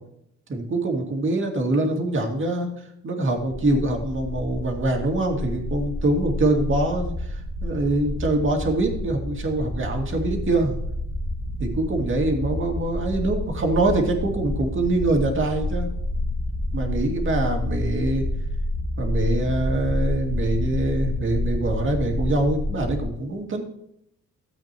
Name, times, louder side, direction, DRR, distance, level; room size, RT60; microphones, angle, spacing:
voice 1, 0.5-2.7 3.0-10.7 11.6-15.9 16.7-18.3 19.0-23.6, right 2 dB, 40° right, 2 dB, 2.3 m, -24 dB
sound 1, 3.6-23.0, left 1 dB, 25° left, 1.8 m, -29 dB
14.0 x 8.1 x 3.0 m, 0.73 s
cardioid pair, 90°, 30 cm